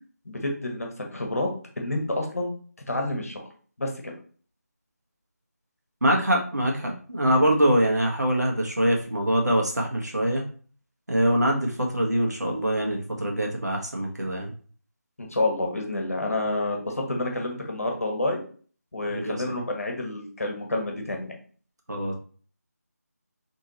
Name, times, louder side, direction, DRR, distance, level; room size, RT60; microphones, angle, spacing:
voice 1, 0.2-1.5 1.8-2.5 2.9-3.5 3.8-4.1 15.2-18.4 18.9-21.3, left 2 dB, 60° left, 2 dB, 1.3 m, -28 dB
voice 2, 6.0-10.4 11.1-14.5 19.0-19.6 21.9-22.1, right 1 dB, 80° right, 0 dB, 1.4 m, -24 dB
4.2 x 3.5 x 3.1 m, 0.43 s
figure-of-eight pair, 160°, 9 cm